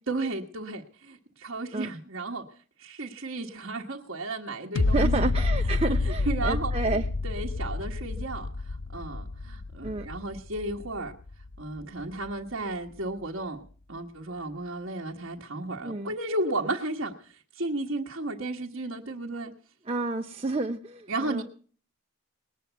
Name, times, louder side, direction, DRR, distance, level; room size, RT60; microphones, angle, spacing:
voice 1, 0.1-2.5 2.8-5.2 6.3-6.7 7.2-8.5 8.9-11.1 11.6-13.6 13.9-17.1 17.5-19.5 21.1-21.4, right 2 dB, 65° right, 0 dB, 1.5 m, -33 dB
sound 1, 4.8-11.8 12.3-12.4, left 3 dB, 55° left, 0.7 m, -29 dB
voice 2, 4.9-7.1 9.8-10.1 15.8-16.2 19.9-21.4, right 3 dB, 25° right, 4 dB, 0.8 m, -30 dB
20.5 x 8.2 x 8.1 m, 0.43 s
head